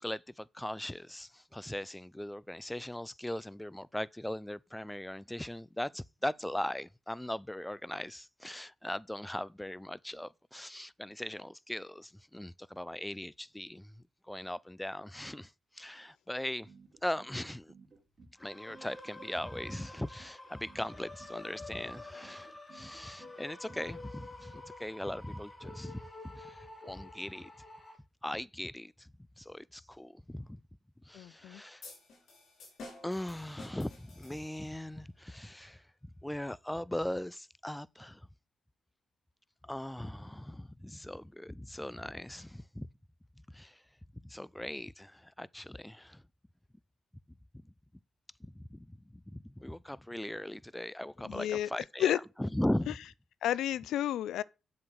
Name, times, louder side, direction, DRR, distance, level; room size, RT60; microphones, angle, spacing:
voice 1, 0.0-16.7 17.0-17.7 18.4-27.5 28.2-29.1 29.4-30.6 31.1-31.8 33.0-38.3 39.6-42.9 43.5-43.8 44.2-46.2 48.4-52.1 52.4-52.9, left 1 dB, 5° left, 0.4 m, -39 dB
sound 1, 16.7-24.3, right 4 dB, 50° right, 3.3 m, -57 dB
sound 2, 18.4-28.0, left 2 dB, 25° left, 2.6 m, -49 dB
voice 2, 31.1-31.6 51.2-51.7 52.0-52.2 53.4-54.4, left 11 dB, 85° left, 0.4 m, -31 dB
sound 3, 31.8-34.9, left 2 dB, 70° left, 5.8 m, -51 dB
7.8 x 7.7 x 6.3 m
cardioid pair, 70°, 0 cm